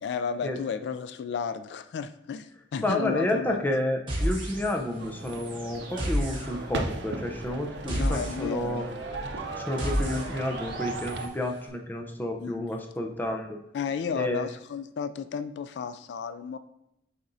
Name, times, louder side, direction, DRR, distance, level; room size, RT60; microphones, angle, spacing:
voice 1, 0.0-3.7 8.0-8.9 12.4-12.8 13.7-16.6, left 6 dB, 80° left, 11 dB, 0.3 m, -33 dB
voice 2, 2.8-8.9 9.5-13.6 14.1-14.5, left 1 dB, 10° left, 2 dB, 0.6 m, -30 dB
sound 1, 4.1-5.0 5.2-11.3, equal, 30° right, 1.4 m, -33 dB
sound 2, 5.0-11.3, right 3 dB, 90° right, 0.7 m, -36 dB
8.6 x 4.2 x 2.6 m, 0.82 s
head